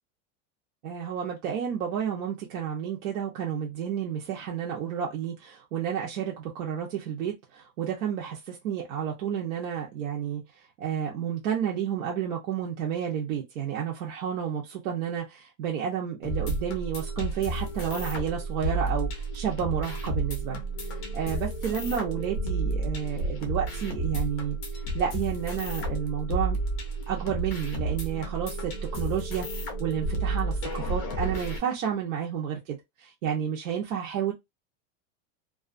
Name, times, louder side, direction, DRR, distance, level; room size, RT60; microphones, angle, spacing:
voice 1, 0.8-20.6 21.1-26.6 27.1-34.3, right 8 dB, 65° right, 0.8 m, -31 dB
sound 1, 16.2-31.6, right 2 dB, 25° left, 0.5 m, -31 dB
2.4 x 2.4 x 2.4 m
supercardioid pair, 175°, 40 cm